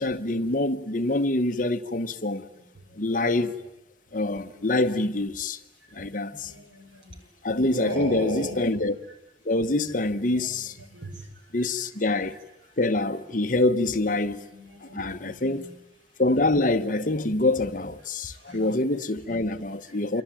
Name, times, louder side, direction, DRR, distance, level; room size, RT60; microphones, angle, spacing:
voice 1, 0.0-2.4 3.0-3.6 4.1-5.6 5.9-6.5 7.4-8.9 9.4-10.8 11.5-12.4 12.8-14.4 14.8-15.7 16.2-20.2, left 2 dB, 45° left, 1.1 m, -25 dB
voice 2, 6.3-7.2 7.7-8.6 10.4-11.3 14.2-15.7 18.3-18.7 20.1-20.2, right 1 dB, 80° right, 6.3 m, -38 dB
27.5 x 23.5 x 9.1 m
head